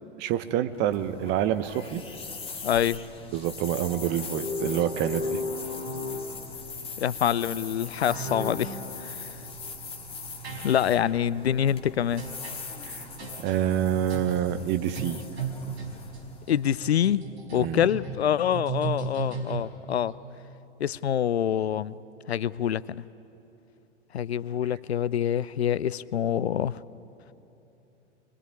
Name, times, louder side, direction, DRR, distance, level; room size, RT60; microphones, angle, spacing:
voice 1, 0.2-2.0 3.3-5.4 12.8-13.1 13.4-15.2 17.6-17.9, right 10 dB, 30° right, 11 dB, 1.0 m, -27 dB
sound 1, 0.7-16.9, left 3 dB, 15° left, 2.3 m, -41 dB
voice 2, 2.6-3.0 7.0-8.8 9.0-9.3 10.6-12.2 16.5-17.2 17.5-20.1 20.8-21.9 22.3-23.0 24.1-26.8, left 9 dB, 65° left, 20 dB, 0.6 m, -26 dB
sound 2, 4.3-6.7 8.1-9.0 10.4-11.1 12.2-12.6 13.2-13.5 14.1-14.4 15.0-20.0, right 1 dB, 65° right, 4.9 m, -35 dB
25.5 x 23.0 x 9.9 m, 2.9 s
figure-of-eight pair, 100°, 35 cm